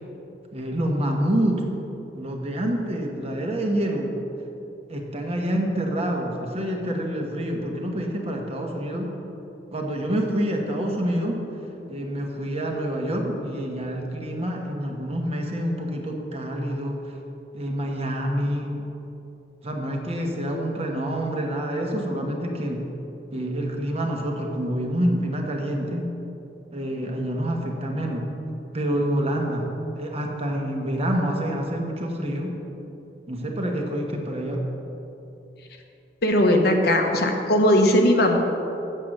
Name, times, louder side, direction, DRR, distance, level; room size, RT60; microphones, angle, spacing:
voice 1, 0.5-1.7 2.1-4.2 4.9-9.1 9.7-11.4 11.9-17.2 17.5-18.9 19.6-22.9 23.3-26.0 26.7-28.3 28.7-32.6 33.3-34.7, equal, 35° right, 1 dB, 1.2 m, -27 dB
voice 2, 36.2-38.4, left 1 dB, 65° left, 3 dB, 1.1 m, -19 dB
7.7 x 7.5 x 6.5 m, 2.8 s
head